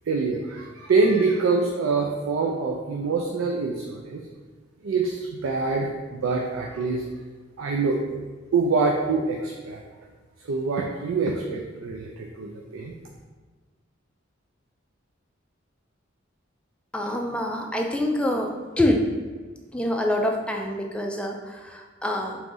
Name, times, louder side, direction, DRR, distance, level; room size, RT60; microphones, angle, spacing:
voice 1, 0.1-4.2 4.8-7.0 7.6-8.0 8.5-9.8 10.5-12.9, right 4 dB, 80° right, 1 dB, 0.4 m, -25 dB
voice 2, 16.9-18.5 18.8-19.0 19.7-22.4, left 1 dB, 5° left, 1 dB, 0.4 m, -26 dB
3.8 x 3.0 x 3.7 m, 1.4 s
head